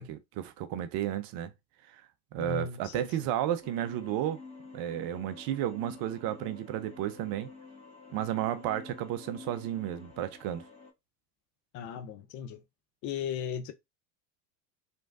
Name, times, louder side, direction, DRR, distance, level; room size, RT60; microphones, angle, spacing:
voice 1, 0.0-1.5 1.9-2.0 2.3-4.4 4.7-7.5 8.1-10.7, right 11 dB, 45° right, 0.6 m, -33 dB
voice 2, 2.4-3.1 11.7-12.6 13.0-13.7, left 8 dB, 40° left, 0.4 m, -36 dB
sound 1, 3.6-10.9, left 4 dB, 10° left, 1.4 m, -49 dB
3.0 x 2.5 x 2.3 m
hypercardioid pair, 80°, 49 cm